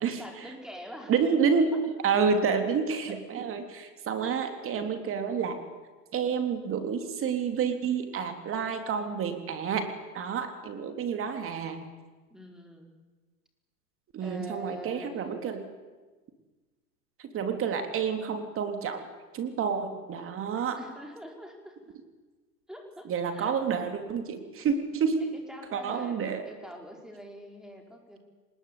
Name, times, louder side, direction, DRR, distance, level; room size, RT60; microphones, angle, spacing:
voice 1, 0.2-1.1 1.7-1.8 3.1-3.4 4.2-4.4 12.3-12.9 14.2-15.5 20.7-21.8 22.7-23.5 25.3-28.2, equal, ahead, 2 dB, 4.7 m, -45 dB
voice 2, 1.1-5.6 6.1-9.9 10.1-11.8 14.1-15.6 17.2-19.0 19.3-20.8 23.1-25.2 25.7-26.4, right 6 dB, 25° right, 7 dB, 3.5 m, -29 dB
23.0 x 21.0 x 8.7 m, 1.3 s
hypercardioid pair, 120°, 48 cm